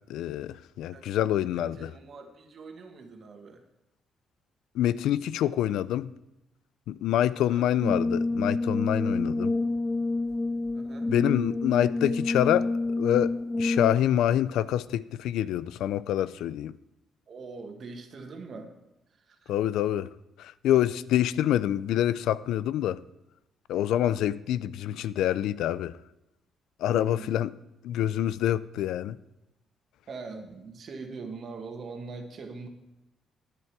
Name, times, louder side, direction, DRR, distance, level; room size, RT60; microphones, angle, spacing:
voice 1, 0.1-1.9 4.8-6.1 6.9-9.5 11.1-12.7 13.0-13.3 13.6-16.7 19.5-20.1 20.4-23.0 23.7-26.0 26.8-27.5 27.8-29.2, left 11 dB, 85° left, 0.4 m, -26 dB
voice 2, 1.5-3.6 7.4-7.6 10.7-11.1 17.3-18.8 19.1-19.5 26.9-27.3 30.1-32.7, right 4 dB, 55° right, 1.7 m, -42 dB
Brass instrument, 7.8-14.2, left 2 dB, 20° left, 0.5 m, -28 dB
11.0 x 9.1 x 4.7 m
cardioid pair, 90°, 0 cm